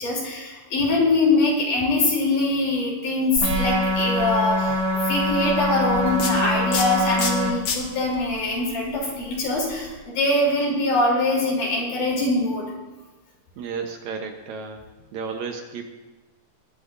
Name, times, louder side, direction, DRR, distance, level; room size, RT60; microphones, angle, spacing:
voice 1, 0.0-4.8 5.0-12.6, left 2 dB, 70° left, -3 dB, 4.8 m, -23 dB
sound 1, 3.4-10.0, left 3 dB, 55° left, 1.6 m, -33 dB
sound 2, 3.4-7.5, equal, 55° right, 2.8 m, -24 dB
voice 2, 13.6-14.8 15.1-15.8, right 5 dB, 70° right, 4 dB, 2.1 m, -32 dB
19.5 x 12.0 x 2.6 m, 1.2 s
omnidirectional pair, 3.8 m